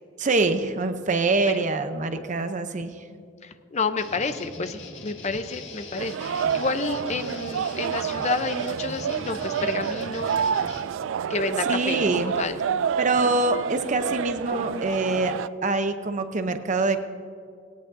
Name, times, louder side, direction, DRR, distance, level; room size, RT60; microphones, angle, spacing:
voice 1, 0.2-3.0 11.7-12.3 13.0-15.3 15.6-17.0, right 3 dB, 40° right, 8 dB, 0.7 m, -25 dB
voice 2, 3.1-10.4 11.3-12.6, left 4 dB, 35° left, 10 dB, 0.7 m, -30 dB
sound 1, 4.0-10.8, left 3 dB, 65° left, 1.8 m, -42 dB
sound 2, 6.0-15.5, right 7 dB, 75° right, 0.3 m, -28 dB
18.5 x 18.0 x 2.7 m, 2.3 s
head